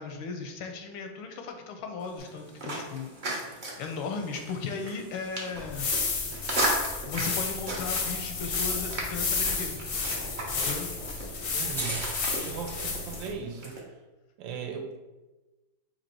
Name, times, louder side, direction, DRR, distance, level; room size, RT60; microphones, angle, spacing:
voice 1, 0.0-5.9 7.0-9.8 10.5-10.9, left 4 dB, 85° left, 5 dB, 1.4 m, -37 dB
sound 1, 2.0-12.7, equal, 5° left, 0.4 m, -44 dB
sound 2, 2.2-13.8, right 2 dB, 50° right, 0.5 m, -37 dB
sound 3, 5.6-13.3, left 4 dB, 65° left, 0.8 m, -31 dB
voice 2, 11.5-12.1 12.4-13.8 14.4-15.0, right 6 dB, 75° right, 3 dB, 1.3 m, -37 dB
4.1 x 2.7 x 4.5 m, 1.1 s
omnidirectional pair, 2.2 m